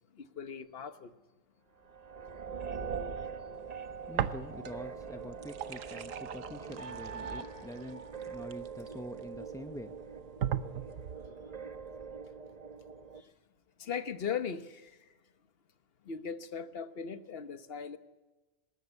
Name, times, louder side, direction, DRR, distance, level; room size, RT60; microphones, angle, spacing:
voice 1, 0.2-1.1 13.8-14.9 16.0-18.0, left 7 dB, 50° left, 1.3 m, -38 dB
sound 1, 1.9-13.2, right 5 dB, 35° right, 1.0 m, -43 dB
voice 2, 4.1-9.9, equal, 5° left, 0.5 m, -45 dB
sound 2, 4.1-4.9 5.2-9.2 9.8-9.9 10.4-11.3, right 9 dB, 90° right, 1.3 m, -38 dB
20.0 x 19.0 x 8.2 m
omnidirectional pair, 1.3 m